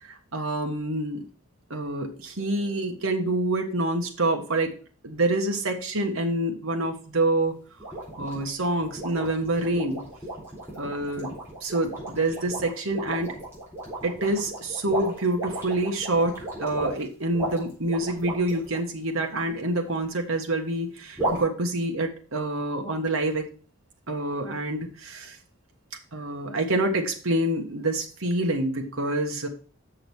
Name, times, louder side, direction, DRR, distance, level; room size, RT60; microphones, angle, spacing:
voice 1, 0.1-1.2 1.7-4.7 5.0-7.5 8.2-10.0 10.8-11.3 11.6-13.3 14.0-23.5 24.1-25.4 26.1-29.5, right 2 dB, 70° right, 3 dB, 1.4 m, -27 dB
sound 1, 7.8-18.8 21.2-21.4, right 2 dB, 10° right, 3.9 m, -34 dB
6.8 x 6.5 x 4.7 m, 0.39 s
head